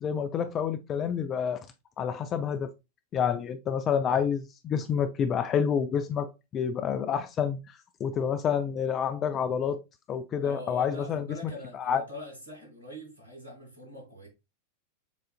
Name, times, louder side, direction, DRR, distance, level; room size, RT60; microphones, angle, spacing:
voice 1, 0.0-1.7 2.0-2.7 3.1-7.6 8.0-9.8 10.1-11.2 11.7-12.0, left 7 dB, 30° left, 0.4 m, -28 dB
voice 2, 10.4-14.3, left 1 dB, 90° left, 2.4 m, -43 dB
7.1 x 2.5 x 2.4 m
figure-of-eight pair, 90°, 0 cm